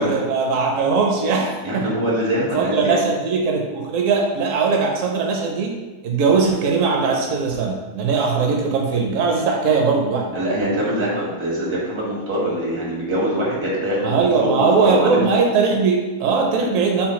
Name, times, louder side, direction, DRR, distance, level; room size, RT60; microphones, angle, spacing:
voice 1, 0.0-1.8 2.5-5.8 6.0-10.4 14.0-17.1, right 4 dB, 65° right, 0 dB, 1.0 m, -20 dB
voice 2, 1.6-3.0 10.3-15.2, right 1 dB, 90° right, -5 dB, 2.0 m, -23 dB
5.6 x 2.3 x 4.2 m, 1.3 s
omnidirectional pair, 1.6 m